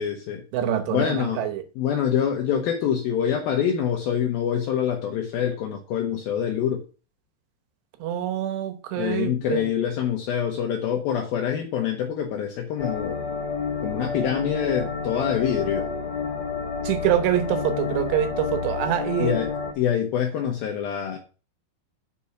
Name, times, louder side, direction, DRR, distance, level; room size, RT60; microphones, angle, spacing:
voice 1, 0.0-0.4 0.9-1.4 1.8-6.9 9.0-13.3 13.8-15.9 19.2-21.2, left 8 dB, 75° left, 2.2 m, -25 dB
voice 2, 0.5-1.6 8.0-9.7 16.8-19.4, right 10 dB, 75° right, 3.0 m, -25 dB
sound 1, 12.8-19.7, left 5 dB, 30° left, 2.5 m, -30 dB
8.4 x 5.4 x 5.6 m
omnidirectional pair, 5.4 m